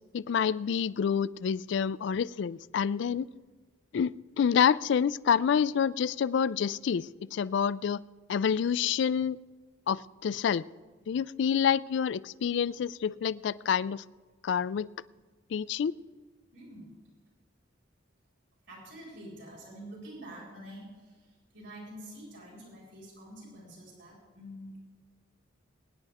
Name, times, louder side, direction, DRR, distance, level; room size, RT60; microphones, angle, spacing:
voice 1, 0.1-3.3 3.9-8.0 8.3-9.4 9.9-10.6 11.1-14.0 14.4-14.9 15.5-16.0, left 7 dB, 65° left, 20 dB, 0.3 m, -28 dB
voice 2, 16.5-16.9 18.7-24.9, right 1 dB, 75° right, -3 dB, 4.4 m, -47 dB
22.5 x 10.0 x 3.5 m, 1.3 s
head